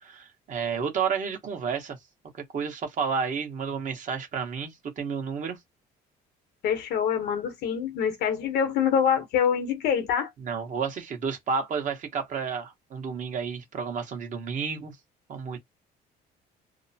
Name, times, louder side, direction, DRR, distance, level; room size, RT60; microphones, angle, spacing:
voice 1, 0.0-2.0 2.3-5.6 10.4-15.0 15.3-15.6, right 6 dB, 50° right, 1.1 m, -31 dB
voice 2, 6.6-10.3, left 7 dB, 75° left, 1.0 m, -25 dB
2.9 x 2.1 x 2.7 m
cardioid pair, 110°, 17 cm